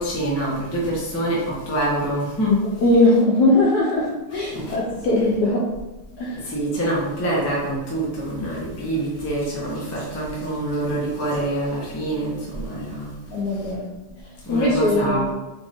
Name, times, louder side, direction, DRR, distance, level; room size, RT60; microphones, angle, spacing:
voice 1, 0.0-2.6 4.5-4.8 6.3-13.1 14.5-15.2, right 1 dB, 20° left, -5 dB, 0.3 m, -25 dB
voice 2, 2.8-5.6 6.2-6.5 13.3-13.8 14.5-15.3, left 2 dB, 75° left, -4 dB, 0.9 m, -20 dB
4.8 x 2.6 x 3.4 m, 1.1 s
omnidirectional pair, 2.4 m